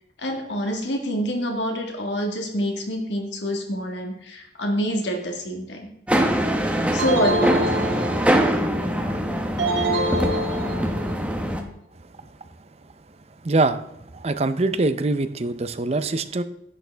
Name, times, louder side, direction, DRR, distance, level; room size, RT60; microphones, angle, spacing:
voice 1, 0.2-5.9 6.9-7.9, equal, 75° left, 2 dB, 1.7 m, -27 dB
sound 1, 6.1-11.6, equal, 5° right, 0.9 m, -23 dB
sound 2, 7.0-8.5 9.6-11.2, right 1 dB, 70° right, 2.1 m, -25 dB
voice 2, 13.4-13.8 14.1-16.4, right 2 dB, 35° right, 11 dB, 0.5 m, -23 dB
10.5 x 8.9 x 3.4 m, 0.75 s
head